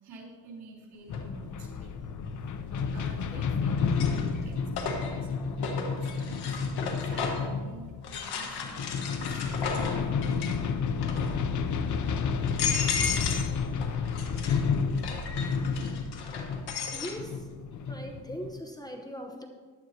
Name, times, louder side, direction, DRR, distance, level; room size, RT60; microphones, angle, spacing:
voice 1, 0.0-2.2 2.9-6.6 7.0-9.4, right 2 dB, 90° right, -3 dB, 3.9 m, -48 dB
sound 1, 1.1-1.2 2.9-3.4 3.8-7.5 8.0-10.7 11.0-11.5 12.0-12.1 12.4-13.5 13.8-17.2, left 5 dB, 85° left, 1.6 m, -35 dB
sound 2, 1.1-18.6, left 5 dB, 50° left, 0.8 m, -31 dB
voice 2, 16.9-17.5 17.9-19.5, equal, 10° left, 3 dB, 0.9 m, -40 dB
15.0 x 10.5 x 2.9 m, 1.5 s
cardioid pair, 110°, 38 cm